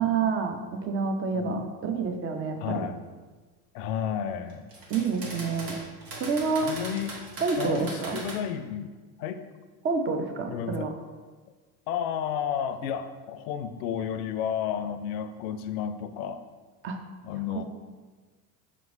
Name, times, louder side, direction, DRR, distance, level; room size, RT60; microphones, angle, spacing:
voice 1, 0.0-2.9 4.9-5.8 6.2-6.7 7.4-8.2 9.8-10.9 16.8-17.0, right 5 dB, 25° right, 5 dB, 0.5 m, -28 dB
voice 2, 1.3-1.8 2.6-3.0 3.7-4.7 6.6-7.2 7.6-8.9 9.2-9.4 10.5-10.9 11.9-16.4 17.2-17.6, left 8 dB, 65° left, 9 dB, 0.5 m, -32 dB
sound 1, 4.5-8.3, right 2 dB, 80° right, 1.2 m, -39 dB
5.9 x 2.9 x 2.6 m, 1.3 s
hypercardioid pair, 80°, 48 cm